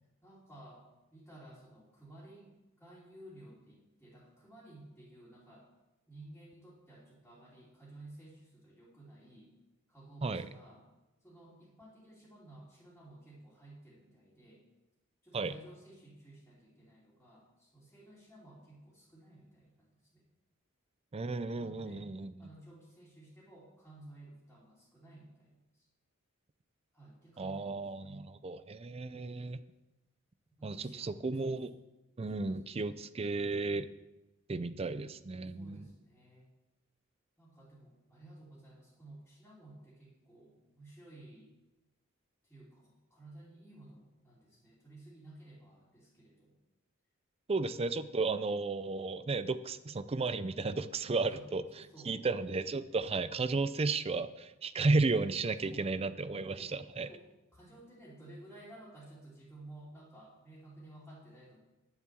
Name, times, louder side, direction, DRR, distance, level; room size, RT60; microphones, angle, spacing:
voice 1, 0.2-5.7 6.1-9.5 9.9-10.8 11.2-14.6 15.2-20.2 21.5-22.1 22.4-25.9 26.9-28.3 30.6-31.6 32.3-32.8 35.4-36.5 37.4-41.5 42.4-46.6 51.3-51.4 51.7-52.2 55.6-55.9 56.5-56.7 57.0-57.2 57.5-61.6, right 1 dB, 5° left, -9 dB, 2.9 m, -55 dB
voice 2, 21.1-22.3 27.4-29.6 30.6-31.7 32.2-33.9 34.5-35.9 47.5-51.6 52.1-57.1, right 3 dB, 30° right, 14 dB, 0.4 m, -33 dB
10.5 x 7.3 x 7.5 m, 1.0 s
head